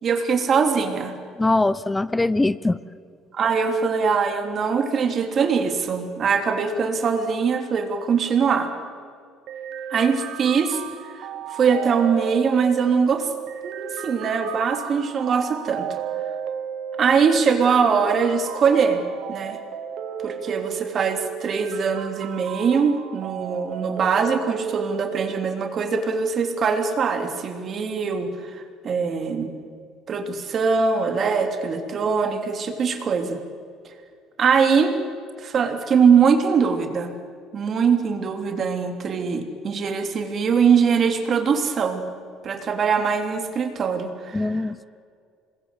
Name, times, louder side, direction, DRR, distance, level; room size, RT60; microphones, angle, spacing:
voice 1, 0.0-1.2 3.3-8.7 9.9-13.3 13.6-16.0 17.0-19.0 19.3-19.6 20.2-29.5 30.1-33.4 34.4-34.9 35.4-37.1 37.5-42.0 42.4-44.9, right 6 dB, 40° right, 5 dB, 3.3 m, -22 dB
voice 2, 1.4-2.8 44.3-44.8, left 2 dB, 10° left, 18 dB, 0.7 m, -22 dB
sound 1, 9.5-25.5, right 9 dB, 65° right, 1.9 m, -34 dB
26.5 x 21.0 x 8.3 m, 2.3 s
cardioid pair, 115°, 0 cm